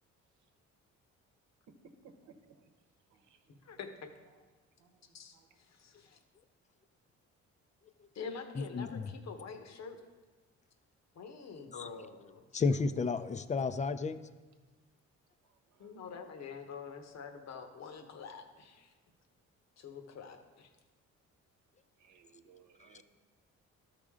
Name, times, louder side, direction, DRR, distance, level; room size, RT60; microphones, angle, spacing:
voice 1, 2.0-2.6 3.1-3.4 4.8-5.0 5.3-5.4 15.8-15.9 22.0-23.0, right 6 dB, 75° right, 7 dB, 0.9 m, -60 dB
voice 2, 3.6-4.1 5.1-5.4 5.7-6.2 8.1-10.0 11.1-12.4 15.8-18.9 19.8-20.7, left 5 dB, 60° left, 6 dB, 1.1 m, -46 dB
voice 3, 8.6-9.1 11.7-11.9 12.5-14.2, left 4 dB, 25° left, 12 dB, 0.4 m, -32 dB
12.5 x 5.0 x 3.7 m, 1.3 s
cardioid pair, 90°, 30 cm